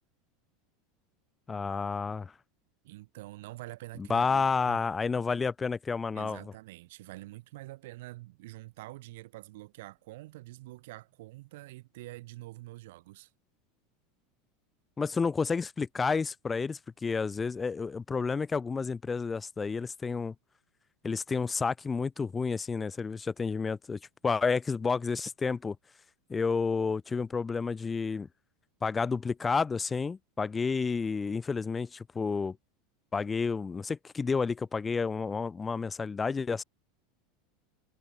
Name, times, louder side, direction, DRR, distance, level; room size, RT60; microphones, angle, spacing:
voice 1, 1.5-2.3 4.0-6.4 15.0-20.3 21.0-25.8 26.3-28.3 28.8-32.6 33.1-36.6, left 5 dB, 20° left, 0.3 m, -30 dB
voice 2, 2.8-4.8 6.1-13.3, right 19 dB, 70° right, 1.2 m, -46 dB
hypercardioid pair, 95°, 0 cm